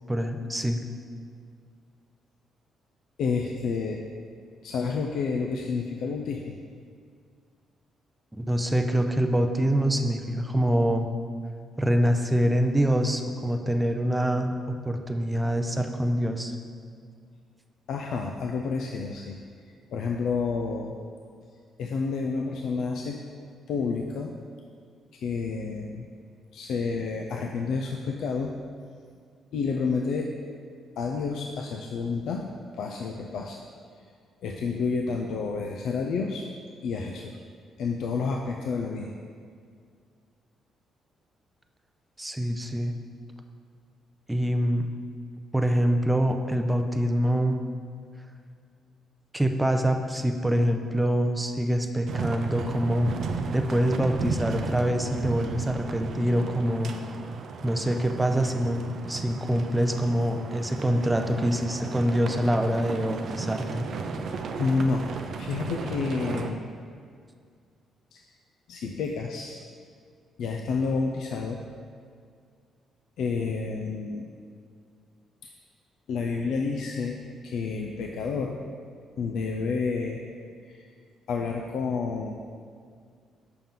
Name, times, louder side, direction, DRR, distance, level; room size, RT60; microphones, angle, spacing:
voice 1, 0.1-0.9 8.3-11.1 11.8-16.5 42.2-42.9 44.3-44.9 45.5-47.6 49.3-53.1 53.5-56.9 57.6-63.9, equal, 10° right, 5 dB, 0.5 m, -25 dB
voice 2, 3.2-4.1 4.6-6.6 17.9-19.4 19.9-21.0 21.8-23.2 23.7-24.4 25.1-26.1 26.5-28.5 29.5-30.3 31.0-33.6 34.4-36.5 36.8-37.4 37.8-39.1 64.6-65.1 65.4-66.6 68.1-68.3 68.7-69.6 70.4-71.6 73.2-74.3 75.4-75.5 76.1-78.6 79.2-80.2 80.6-80.9 81.3-82.3, left 4 dB, 75° left, 2 dB, 0.4 m, -29 dB
sound 1, 52.1-66.5, right 4 dB, 60° right, 0.4 m, -34 dB
5.7 x 5.6 x 3.7 m, 2.2 s
cardioid pair, 90°, 0 cm